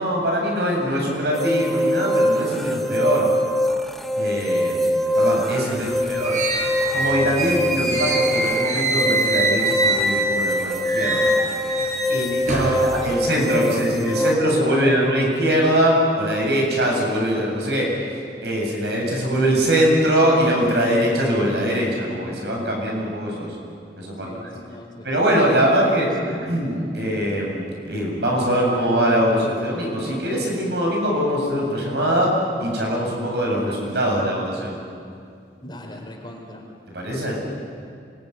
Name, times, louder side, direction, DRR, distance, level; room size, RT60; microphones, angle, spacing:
voice 1, 0.0-3.3 4.2-6.4 6.9-11.3 12.1-18.1 18.4-23.6 24.0-24.5 25.0-32.3 32.6-34.8 36.9-37.4, equal, 70° right, -1 dB, 7.8 m, -22 dB
sound 1, 1.3-14.4, left 1 dB, ahead, 0.9 m, -24 dB
voice 2, 5.8-6.4 12.5-13.4 13.7-15.1 24.2-25.1 25.6-25.9 26.2-26.4 35.6-36.6, left 1 dB, 25° left, 1 dB, 4.4 m, -36 dB
sound 2, 5.8-10.5 10.8-12.8, right 2 dB, 45° right, 6.1 m, -24 dB
27.5 x 21.0 x 9.6 m, 2.3 s
head